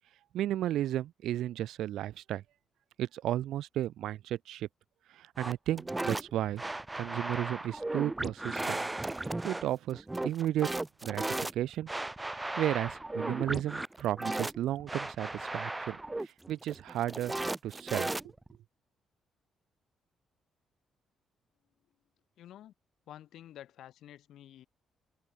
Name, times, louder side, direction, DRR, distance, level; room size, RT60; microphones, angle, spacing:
voice 1, 0.3-2.4 3.0-4.7 5.1-6.6 7.0-8.8 9.4-10.7 11.0-11.2 11.5-11.9 12.3-16.0 16.2-17.3 17.6-18.1, right 12 dB, 80° right, 0.4 m, -33 dB
sound 1, 5.4-18.6, right 2 dB, 15° right, 0.5 m, -36 dB
voice 2, 22.4-22.7 23.1-24.7, left 12 dB, 75° left, 3.1 m, -50 dB
cardioid pair, 90°, 0 cm